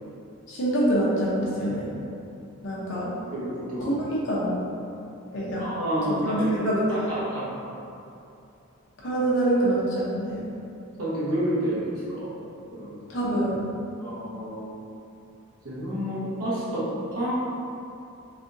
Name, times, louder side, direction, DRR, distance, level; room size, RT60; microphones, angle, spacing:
voice 1, 0.5-1.9 2.6-3.1 3.9-4.6 5.3-5.6 6.2-6.4 6.6-7.1 9.0-10.4 13.1-13.6, right 1 dB, 55° left, -6 dB, 0.9 m, -25 dB
voice 2, 3.3-4.0 5.6-6.5 6.9-7.7 11.0-12.3 12.7-12.9 14.0-14.9 15.6-17.3, equal, 85° right, -8 dB, 1.1 m, -30 dB
3.5 x 3.4 x 2.7 m, 2.7 s
head